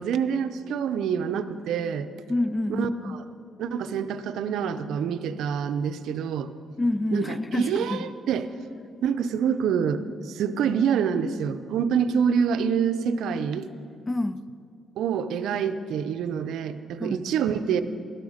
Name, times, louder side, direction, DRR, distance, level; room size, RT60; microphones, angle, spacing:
voice 1, 0.0-2.1 2.7-3.2 3.6-6.5 7.1-8.5 9.0-13.7 15.0-17.8, right 7 dB, 80° right, 10 dB, 0.6 m, -26 dB
voice 2, 2.3-3.2 6.8-8.1 14.1-14.4 17.0-17.2, left 2 dB, 20° left, 15 dB, 0.3 m, -27 dB
13.0 x 11.0 x 5.0 m, 2.3 s
cardioid pair, 90°, 0 cm